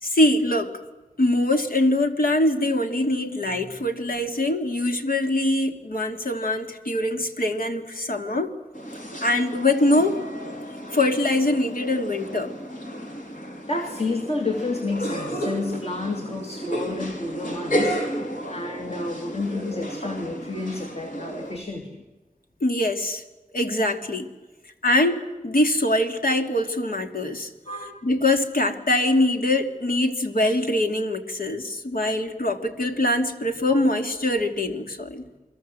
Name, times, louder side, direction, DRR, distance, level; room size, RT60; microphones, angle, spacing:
voice 1, 0.0-0.7 1.2-8.5 9.2-10.2 10.9-12.5 22.6-23.2 23.5-24.3 24.8-27.5 28.0-35.2, left 1 dB, 80° left, 4 dB, 2.6 m, -23 dB
sound 1, 8.7-21.6, equal, 65° left, 4.7 m, -32 dB
voice 2, 13.7-18.0 18.5-22.0 27.7-28.0 32.0-32.1, left 2 dB, 45° left, 3 dB, 2.6 m, -30 dB
29.0 x 22.5 x 7.8 m, 1.1 s
wide cardioid pair, 60°, 15 cm